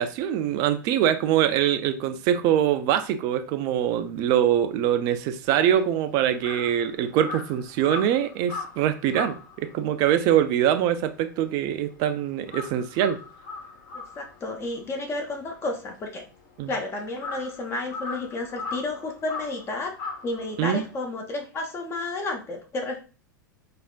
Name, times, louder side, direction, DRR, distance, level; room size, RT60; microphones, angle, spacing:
voice 1, 0.0-13.2 16.6-16.7 20.6-20.8, right 10 dB, 40° right, 10 dB, 0.4 m, -23 dB
Crow, 5.5-12.0 12.3-20.9, left 4 dB, 50° left, 1.0 m, -39 dB
voice 2, 13.9-16.2 16.7-19.9 20.2-23.0, left 2 dB, 25° left, 2 dB, 0.6 m, -31 dB
3.3 x 2.4 x 2.2 m, 0.35 s
figure-of-eight pair, 90°, 11 cm